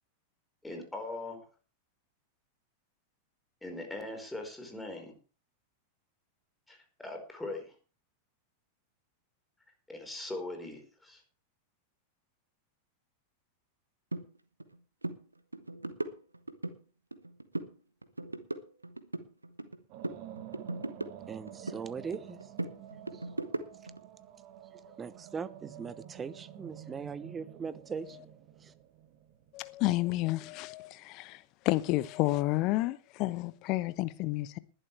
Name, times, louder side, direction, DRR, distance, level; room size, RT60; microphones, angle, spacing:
voice 1, 0.6-1.4 3.6-5.2 6.7-7.7 9.9-11.2, left 2 dB, 5° left, 4.6 m, -40 dB
sound 1, 14.1-14.2 14.6-14.8 15.0-15.2 15.5-16.8 17.1-17.7 18.0-19.8 20.0-21.8 22.1-24.0, right 2 dB, 80° right, 1.0 m, -38 dB
sound 2, 19.9-30.0, right 11 dB, 45° right, 1.8 m, -49 dB
voice 2, 21.3-22.5 23.1-23.2 24.9-28.3 28.6-28.7, right 6 dB, 20° right, 1.0 m, -40 dB
voice 3, 29.5-34.6, left 18 dB, 40° left, 0.9 m, -31 dB
20.0 x 11.0 x 3.4 m
figure-of-eight pair, 90°, 0 cm